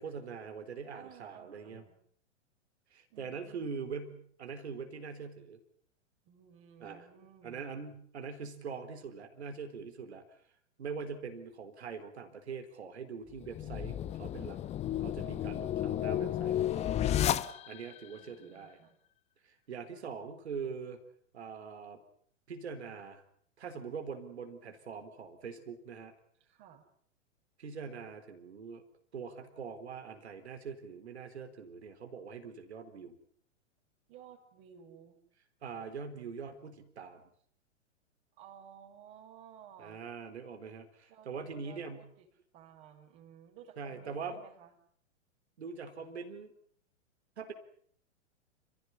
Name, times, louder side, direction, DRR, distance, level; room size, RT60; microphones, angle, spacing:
voice 1, 0.0-1.8 2.9-5.6 6.8-7.1 7.4-10.4 10.8-14.6 15.0-17.0 17.7-18.8 19.4-21.0 21.3-22.0 22.5-23.2 23.6-26.1 27.6-28.8 29.1-33.2 35.6-37.2 39.8-42.0 43.8-44.4 45.6-46.5 47.4-47.5, right 5 dB, 60° right, 7 dB, 4.2 m, -43 dB
voice 2, 0.9-2.0 3.1-3.8 6.2-7.7 15.2-16.6 18.1-19.0 26.5-26.8 34.1-35.2 38.4-40.0 41.1-42.3 42.5-44.7, right 8 dB, 35° right, 1 dB, 5.9 m, -56 dB
sound 1, 13.4-18.0, left 11 dB, 20° left, 1.0 m, -32 dB
29.0 x 16.0 x 9.9 m, 0.63 s
figure-of-eight pair, 105°, 36 cm